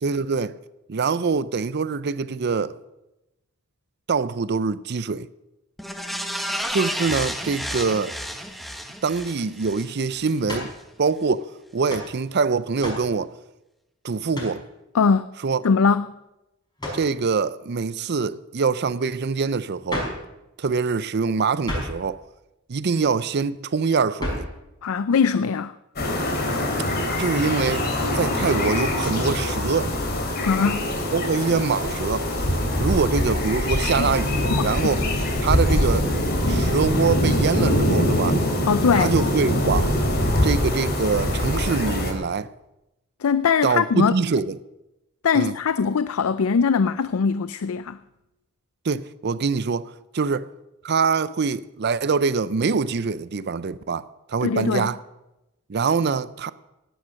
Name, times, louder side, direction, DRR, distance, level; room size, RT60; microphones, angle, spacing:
voice 1, 0.0-0.5 0.9-2.8 4.1-5.3 6.7-8.2 9.0-10.7 11.0-11.5 11.7-13.3 14.0-14.6 15.4-15.7 16.9-20.1 20.6-22.2 22.7-24.4 27.2-27.9 28.1-29.9 31.1-32.3 32.8-35.0 35.4-36.1 36.5-38.4 38.9-39.9 40.4-42.5 43.6-44.6 45.3-45.5 48.8-50.5 50.8-55.0 55.7-56.5, right 5 dB, 50° right, 0.5 m, -24 dB
sound 1, 5.8-10.3 10.7-10.8, equal, ahead, 1.1 m, -31 dB
sound 2, 10.5-10.8 11.9-12.1 12.8-13.1 14.3-14.6 16.8-17.1 19.9-20.3 21.6-22.0 24.2-24.6, left 1 dB, 20° left, 5.0 m, -30 dB
voice 2, 14.9-15.4 15.6-16.1 24.8-25.7 30.4-30.9 34.0-34.1 34.5-35.0 38.7-39.1 43.2-44.1 45.2-48.0 54.4-54.9, left 5 dB, 90° left, 0.4 m, -21 dB
sound 3, 26.0-42.1, left 1 dB, 50° left, 2.8 m, -23 dB
16.5 x 10.0 x 6.4 m
head